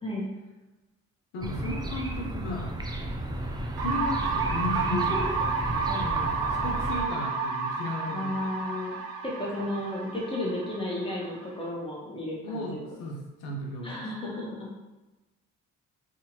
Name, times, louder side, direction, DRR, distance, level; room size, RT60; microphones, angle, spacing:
voice 1, 1.3-2.7 3.8-5.2 5.7-8.5 12.4-14.0, left 2 dB, 85° left, 0 dB, 0.6 m, -35 dB
sound 1, 1.4-7.0, right 1 dB, 10° right, 0.4 m, -33 dB
sound 2, 3.8-11.6, right 5 dB, 70° right, 0.6 m, -31 dB
voice 2, 8.1-12.9 13.8-14.7, left 1 dB, 15° left, -3 dB, 1.0 m, -33 dB
2.7 x 2.5 x 2.9 m, 1.1 s
hypercardioid pair, 40°, 36 cm